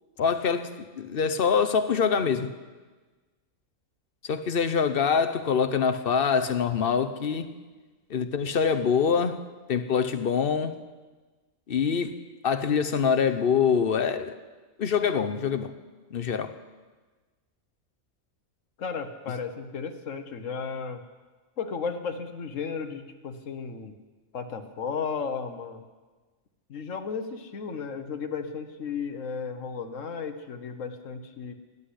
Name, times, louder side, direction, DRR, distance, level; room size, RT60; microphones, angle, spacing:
voice 1, 0.2-2.5 4.2-7.6 8.1-9.4 9.7-10.8 11.7-14.4 14.8-15.7 16.1-16.5, left 6 dB, 50° left, 0.9 m, -25 dB
voice 2, 18.8-21.0 21.6-23.9 24.3-25.8 26.7-31.5, left 5 dB, 65° left, 1.4 m, -34 dB
18.0 x 8.1 x 10.0 m
omnidirectional pair, 1.5 m